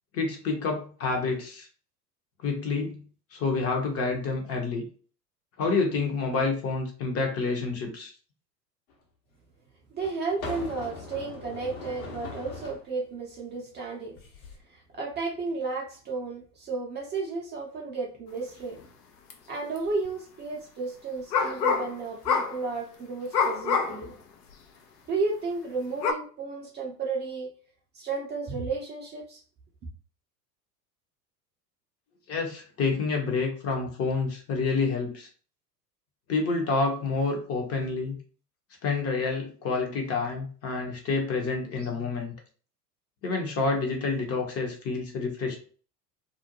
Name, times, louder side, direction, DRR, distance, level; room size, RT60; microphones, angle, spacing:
voice 1, 0.1-1.7 2.4-3.0 3.3-4.8 5.6-8.1 32.3-35.3 36.3-38.2 38.8-42.3 43.2-45.6, left 4 dB, 30° left, 2 dB, 0.7 m, -28 dB
sound 1, 8.9-9.0 10.0-12.8 14.1-14.6, left 3 dB, 60° left, 1.0 m, -40 dB
voice 2, 9.9-14.2 14.7-18.8 19.5-24.1 25.1-27.5 27.9-29.4, right 4 dB, 20° right, -2 dB, 0.5 m, -33 dB
sound 2, 19.3-19.4 19.8-20.1 21.3-21.9 22.2-22.6 23.3-24.1 24.5-24.6 26.0-26.1, left 5 dB, 75° left, 0.6 m, -25 dB
2.5 x 2.1 x 2.8 m, 0.40 s
figure-of-eight pair, 80°, 48 cm